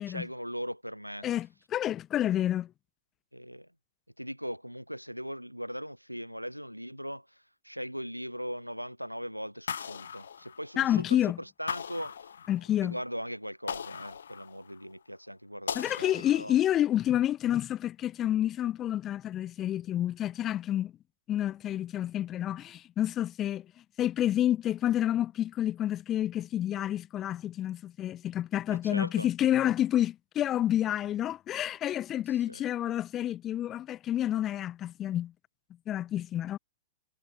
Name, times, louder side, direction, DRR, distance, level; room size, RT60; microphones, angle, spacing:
voice 1, 0.1-1.3 3.3-3.7 4.2-7.3 7.6-12.3 12.8-16.6 28.8-29.3 32.3-32.6, equal, 90° right, 7.2 m, -39 dB
voice 2, 1.2-2.7 10.8-11.4 12.5-13.0 15.7-20.9 21.3-23.7 24.0-35.3 35.9-36.6, left 12 dB, 25° left, 2.0 m, -29 dB
sound 1, 9.7-11.0 11.7-12.9 13.7-14.9 15.7-16.8, left 7 dB, 65° left, 6.4 m, -39 dB
figure-of-eight pair, 105°, 0 cm